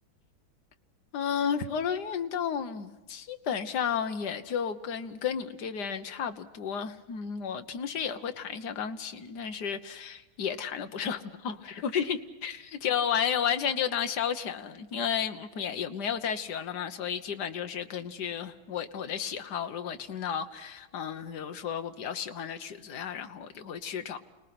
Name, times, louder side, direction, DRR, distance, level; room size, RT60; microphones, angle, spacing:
voice 1, 1.1-24.2, left 7 dB, 55° left, 1.6 m, -32 dB
29.0 x 19.5 x 5.9 m
omnidirectional pair, 2.3 m